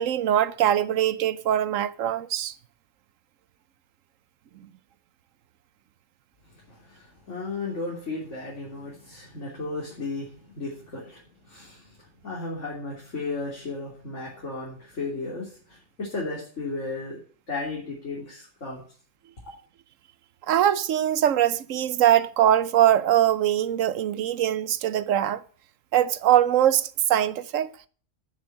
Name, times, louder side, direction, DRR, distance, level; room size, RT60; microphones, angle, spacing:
voice 1, 0.0-2.5 20.5-25.4 25.9-27.7, right 11 dB, 85° right, 1.1 m, -22 dB
voice 2, 6.4-17.2 17.5-18.8 19.4-19.5, left 3 dB, 70° left, 3.7 m, -35 dB
8.9 x 7.4 x 8.6 m
omnidirectional pair, 1.3 m